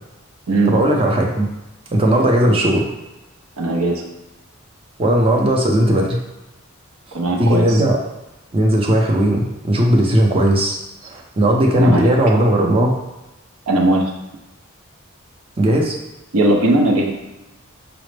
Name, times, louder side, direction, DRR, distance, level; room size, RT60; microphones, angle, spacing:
voice 1, 0.7-1.5 1.9-2.9 5.0-6.2 7.4-8.0 8.5-10.7 11.1-13.0 15.6-16.0, right 1 dB, 25° right, 0 dB, 0.5 m, -16 dB
voice 2, 3.6-4.0 7.1-7.8 11.8-12.1 13.7-14.1 16.3-17.1, right 2 dB, 80° right, 1 dB, 0.6 m, -18 dB
5.0 x 2.0 x 3.2 m, 0.98 s
head